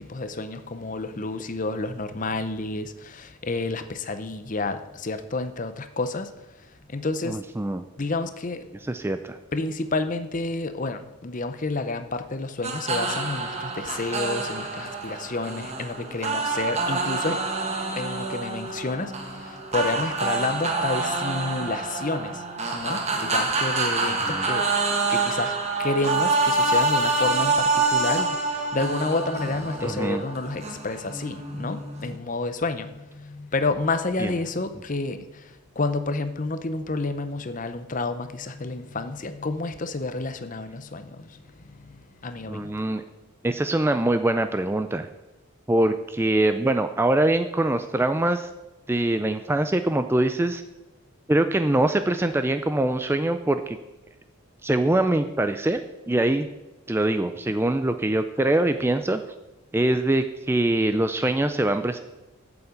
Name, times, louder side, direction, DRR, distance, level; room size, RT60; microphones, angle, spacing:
voice 1, 0.0-6.3 6.6-7.4 8.0-8.7 9.5-17.5 17.9-22.4 22.7-24.8 25.1-42.8, left 3 dB, 35° left, 11 dB, 0.7 m, -30 dB
voice 2, 7.3-7.8 8.9-9.4 24.0-24.5 29.8-30.2 34.2-34.3 42.5-43.0 43.4-45.1 45.7-48.5 48.9-50.6 51.3-53.8 54.6-55.8 56.1-56.5 56.9-59.2 59.7-62.0, right 1 dB, 10° right, 9 dB, 0.3 m, -23 dB
sound 1, 12.6-32.2, right 3 dB, 30° right, 1.5 m, -27 dB
8.8 x 7.0 x 8.1 m, 1.0 s
head